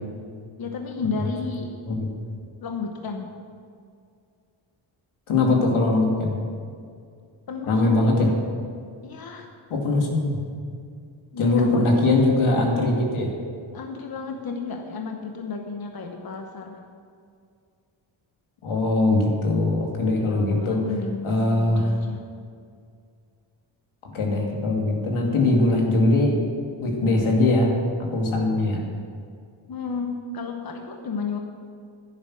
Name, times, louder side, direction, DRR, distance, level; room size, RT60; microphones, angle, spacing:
voice 1, 0.6-1.8 2.6-3.3 7.5-8.1 9.0-9.5 11.3-12.1 13.7-16.8 20.0-22.3 29.7-31.4, left 4 dB, 50° left, 3 dB, 1.1 m, -33 dB
voice 2, 5.3-6.4 7.6-8.3 9.7-10.4 11.4-13.4 18.6-20.8 21.2-21.9 24.0-26.5 26.8-27.8 28.1-28.8, left 2 dB, 85° left, 0 dB, 2.5 m, -21 dB
10.5 x 10.5 x 6.2 m, 2.2 s
cardioid pair, 100°, 48 cm